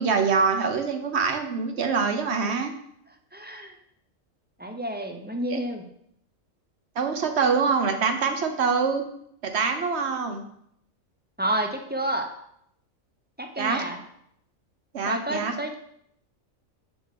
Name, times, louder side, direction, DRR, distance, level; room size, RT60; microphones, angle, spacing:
voice 1, 0.0-2.7 5.5-5.6 7.0-9.0 9.4-10.4 13.6-13.8 14.9-15.5, right 5 dB, 55° right, 6 dB, 1.1 m, -24 dB
voice 2, 3.3-3.7 4.6-5.9 11.4-12.3 13.4-14.0 15.0-15.7, right 1 dB, 15° right, 4 dB, 0.4 m, -29 dB
7.0 x 4.6 x 5.9 m, 0.72 s
omnidirectional pair, 1.4 m